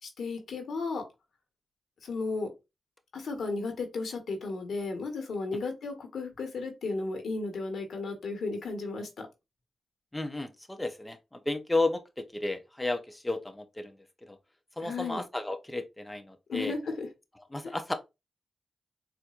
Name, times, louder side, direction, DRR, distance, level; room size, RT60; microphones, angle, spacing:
voice 1, 0.0-1.0 2.0-2.5 3.1-9.3 14.8-15.2 16.5-17.1 17.6-17.7, left 3 dB, 75° left, 1.1 m, -34 dB
voice 2, 10.1-13.9 14.3-14.4 14.8-16.7 17.5-17.9, left 2 dB, 15° left, 0.6 m, -33 dB
4.2 x 2.5 x 2.4 m
cardioid pair, 55°, 0 cm